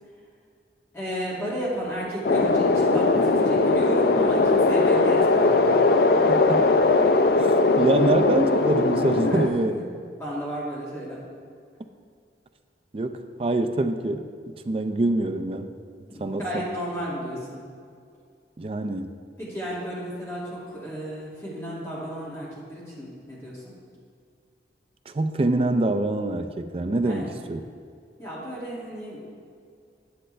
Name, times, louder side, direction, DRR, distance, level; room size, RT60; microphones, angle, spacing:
voice 1, 0.9-5.6 9.2-9.9 10.2-11.2 16.1-17.6 19.4-23.7 27.0-27.4 28.2-29.2, equal, 15° left, -8 dB, 2.2 m, -33 dB
sound 1, 2.2-9.5, left 3 dB, 55° left, 0.4 m, -20 dB
voice 2, 6.3-6.6 7.8-9.8 12.9-14.3 14.7-15.7 16.2-16.6 18.6-19.2 25.1-27.6, right 2 dB, 30° right, 8 dB, 0.4 m, -25 dB
10.0 x 6.5 x 3.3 m, 2.2 s
head